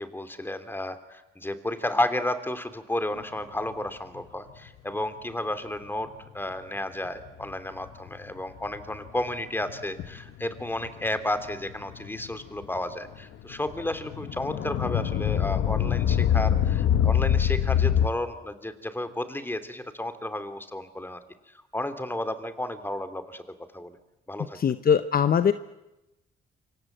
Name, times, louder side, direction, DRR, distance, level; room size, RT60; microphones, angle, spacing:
voice 1, 0.0-21.2 21.7-24.0 24.3-24.6, left 1 dB, 10° left, 9 dB, 2.9 m, -32 dB
sound 1, 3.6-3.8 7.1-7.2 7.4-7.5 7.9-8.1 8.8-9.3 9.6-10.2 10.5-13.1 13.5-18.1, left 9 dB, 75° left, 1.4 m, -25 dB
voice 2, 24.5-25.5, left 7 dB, 45° left, 11 dB, 1.0 m, -21 dB
27.5 x 25.0 x 8.1 m, 0.98 s
cardioid pair, 90°, 20 cm